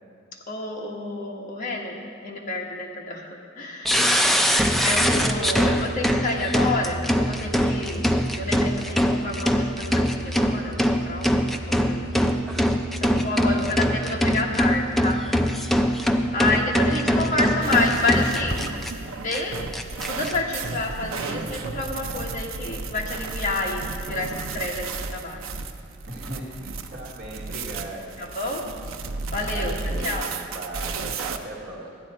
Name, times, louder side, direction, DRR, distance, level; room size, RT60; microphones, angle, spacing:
voice 1, 0.5-2.0 2.2-3.3 3.6-3.9 4.8-11.3 11.7-12.3 13.0-15.2 16.3-18.7 19.2-19.6 20.1-25.4 28.2-28.6 29.3-29.7 30.0-30.3, left 2 dB, 40° left, -2 dB, 1.5 m, -29 dB
sound 1, 3.8-18.9 19.3-19.4 19.7-20.3, equal, ahead, 0.5 m, -22 dB
voice 2, 3.9-5.3 13.4-13.8 16.4-17.7 26.1-28.2 29.5-30.2 30.5-31.9, right 1 dB, 55° right, -5 dB, 1.5 m, -37 dB
sound 2, 17.6-31.4, right 4 dB, 90° right, 0.6 m, -33 dB
13.5 x 9.8 x 4.3 m, 2.3 s
head